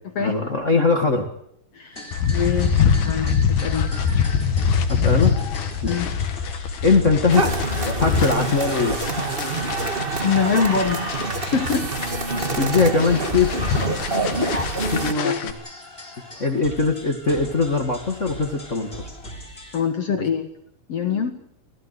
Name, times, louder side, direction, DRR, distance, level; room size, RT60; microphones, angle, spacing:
voice 1, 0.2-1.3 4.9-5.3 5.8-6.1 6.8-9.0 12.5-13.9 14.9-15.5 16.4-18.9, left 4 dB, 35° left, 4 dB, 1.3 m, -21 dB
sound 1, 1.9-19.8, left 1 dB, 15° left, 3.8 m, -41 dB
sound 2, 2.1-15.5, left 6 dB, 75° left, 3.5 m, -24 dB
voice 2, 2.3-3.9 5.8-6.1 10.2-11.9 14.4-14.9 15.2-15.5 19.7-20.5 20.9-21.3, left 6 dB, 55° left, 6 dB, 1.8 m, -24 dB
sound 3, 7.3-15.1, right 3 dB, 65° right, 0.5 m, -26 dB
25.0 x 16.5 x 8.3 m, 0.72 s
omnidirectional pair, 4.5 m